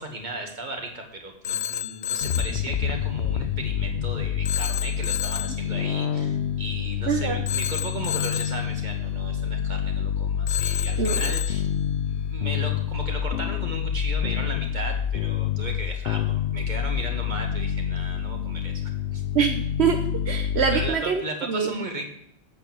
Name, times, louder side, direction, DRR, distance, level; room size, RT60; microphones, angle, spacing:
voice 1, 0.0-11.7 12.0-18.8 19.1-19.2 20.7-22.1, right 1 dB, 45° right, 3 dB, 2.1 m, -36 dB
Telephone, 1.4-2.6 4.4-5.6 7.5-8.6 10.5-11.6, left 9 dB, 55° left, 0.4 m, -30 dB
sound 1, 2.2-20.9, left 9 dB, 80° left, 0.9 m, -27 dB
voice 2, 7.1-7.4 11.0-11.2 19.3-21.2 21.5-21.7, right 6 dB, 75° right, 5 dB, 1.2 m, -24 dB
8.3 x 8.1 x 7.8 m, 0.73 s
omnidirectional pair, 1.1 m